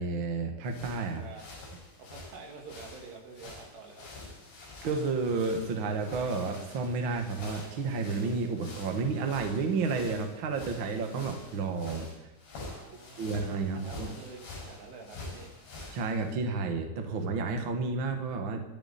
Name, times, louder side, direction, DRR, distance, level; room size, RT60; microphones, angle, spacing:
voice 1, 0.0-1.2 4.8-12.1 13.2-14.1 15.9-18.6, right 4 dB, 50° right, 4 dB, 1.5 m, -31 dB
sound 1, 0.6-16.3, left 2 dB, 85° left, 7.4 m, -47 dB
voice 2, 1.0-1.6 2.0-4.1 12.6-13.4 13.7-15.5, right 4 dB, 80° right, 1 dB, 4.6 m, -48 dB
28.0 x 10.5 x 4.3 m, 1.0 s
omnidirectional pair, 4.7 m